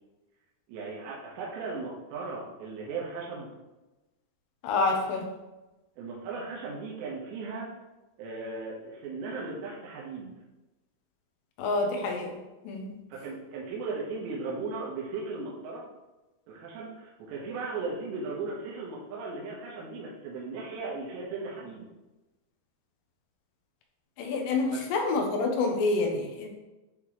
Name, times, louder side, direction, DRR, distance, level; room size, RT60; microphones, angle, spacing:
voice 1, 0.7-3.5 6.0-7.7 8.2-10.3 13.2-15.8 16.5-21.9 24.7-24.8, right 3 dB, 85° right, -4 dB, 3.3 m, -37 dB
voice 2, 4.6-5.3 11.6-12.4 12.6-13.0 24.2-26.5, left 3 dB, 75° left, 2 dB, 2.1 m, -27 dB
10.5 x 3.6 x 3.1 m, 1.1 s
omnidirectional pair, 5.0 m